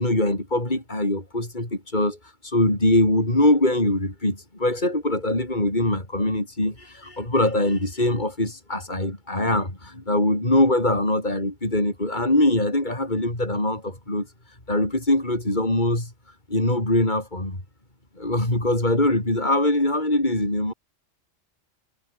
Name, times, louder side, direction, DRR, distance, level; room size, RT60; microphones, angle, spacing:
voice 1, 0.0-2.2 2.4-14.3 14.7-16.1 16.5-17.6 18.2-20.7, left 1 dB, 35° left, 6.4 m, -22 dB
omnidirectional pair, 1.3 m